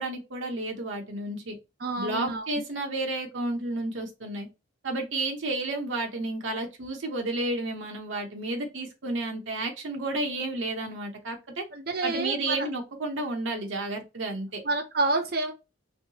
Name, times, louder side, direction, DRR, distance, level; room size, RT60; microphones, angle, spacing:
voice 1, 0.0-1.6 2.0-4.5 4.8-11.6 12.0-14.6, right 2 dB, 75° right, 0.9 m, -31 dB
voice 2, 1.8-2.5 11.7-12.7 14.6-15.5, right 2 dB, 50° right, 0.6 m, -28 dB
3.3 x 2.7 x 2.8 m
head